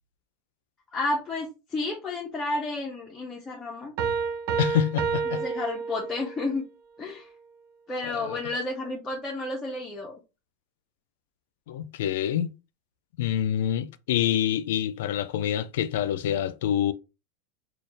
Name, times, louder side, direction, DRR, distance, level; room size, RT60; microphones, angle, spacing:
voice 1, 0.9-3.9 5.3-6.6 7.0-7.3 7.9-10.2, left 2 dB, 15° left, 0.8 m, -31 dB
sound 1, 4.0-6.5, right 6 dB, 60° right, 0.5 m, -29 dB
voice 2, 4.6-5.4 8.0-8.4 11.7-12.5 13.2-16.9, left 10 dB, 75° left, 0.4 m, -26 dB
4.1 x 2.3 x 3.3 m
supercardioid pair, 145°, 0 cm